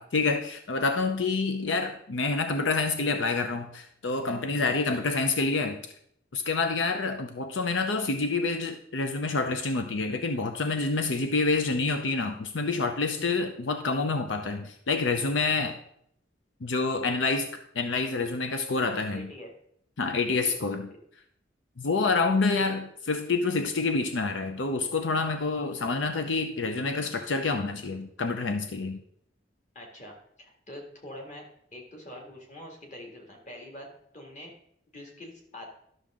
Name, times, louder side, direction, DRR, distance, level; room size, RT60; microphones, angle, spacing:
voice 1, 0.0-5.8 6.3-15.8 16.6-17.5 17.7-19.3 20.0-20.9 21.8-29.0, left 3 dB, 90° left, 7 dB, 0.7 m, -27 dB
voice 2, 19.1-19.5 20.3-20.6 20.9-21.0 29.7-31.5 31.7-33.9 34.1-34.5 34.9-35.7, left 1 dB, 40° left, 0 dB, 2.1 m, -44 dB
12.0 x 6.4 x 3.7 m, 0.69 s
head